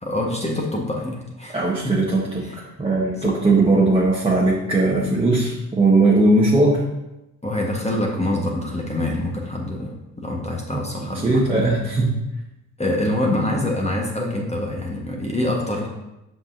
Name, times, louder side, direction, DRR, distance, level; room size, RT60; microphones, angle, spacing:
voice 1, 0.0-1.6 1.8-1.9 2.4-2.6 3.2-3.4 7.4-11.4 12.8-15.9, left 1 dB, 15° left, -2 dB, 1.5 m, -25 dB
voice 2, 1.5-6.8 10.7-10.8 11.2-12.1, right 2 dB, 10° right, -5 dB, 1.5 m, -19 dB
7.7 x 5.4 x 2.8 m, 0.93 s
hypercardioid pair, 55°, 45 cm